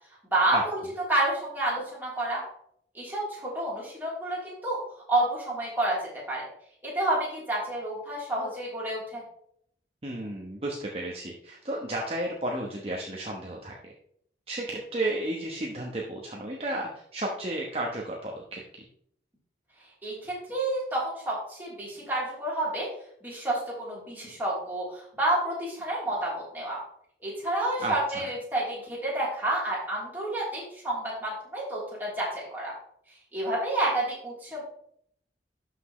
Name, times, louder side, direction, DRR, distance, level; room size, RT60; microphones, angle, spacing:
voice 1, 0.3-0.8 1.1-2.4 2.9-4.8 5.1-6.0 6.3-6.5 6.8-9.2 20.0-22.9 23.2-26.8 27.2-32.7 33.3-34.6, right 1 dB, 10° right, -6 dB, 3.4 m, -29 dB
voice 2, 10.0-13.9 14.5-18.9 27.8-28.2, right 1 dB, 35° right, -1 dB, 1.0 m, -33 dB
12.0 x 5.9 x 3.2 m, 0.68 s
head